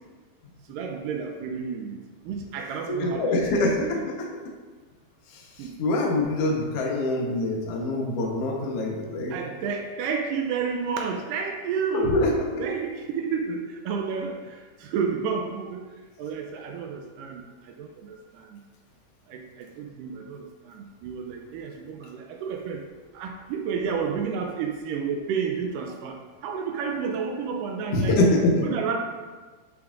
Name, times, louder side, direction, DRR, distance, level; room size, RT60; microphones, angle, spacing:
voice 1, 0.7-2.0 2.2-4.1 5.6-5.7 9.3-12.1 12.6-15.8 16.2-18.6 19.3-22.9 23.1-26.2 26.4-28.2 28.6-29.0, right 6 dB, 80° right, 3 dB, 2.0 m, -31 dB
voice 2, 2.9-4.3 5.6-9.3 11.9-12.7 27.9-28.5, left 2 dB, 70° left, -1 dB, 1.4 m, -24 dB
11.5 x 6.0 x 2.6 m, 1.4 s
omnidirectional pair, 4.5 m